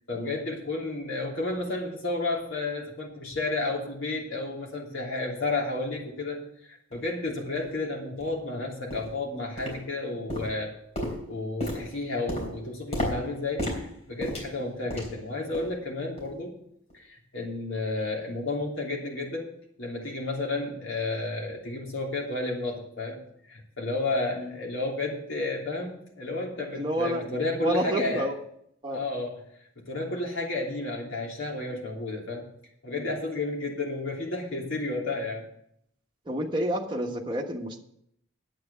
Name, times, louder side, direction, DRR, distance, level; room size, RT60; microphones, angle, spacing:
voice 1, 0.1-6.4 6.7-10.7 11.3-16.5 16.9-19.5 19.8-23.2 23.5-28.3 28.9-29.4 29.8-32.4 32.8-35.4, left 2 dB, 65° left, -1 dB, 3.0 m, -32 dB
sound 1, 6.9-7.0 7.6-7.7 8.2-8.4 8.9-9.2 9.6-10.0 10.3-15.2 15.5-15.8 16.2-16.4 16.9-17.0, left 1 dB, 30° left, 3.5 m, -34 dB
voice 2, 26.7-27.2 27.6-28.3 28.8-29.0 32.9-33.1 36.3-37.8, right 1 dB, 25° right, 0 dB, 1.2 m, -29 dB
9.6 x 8.3 x 6.9 m, 0.73 s
head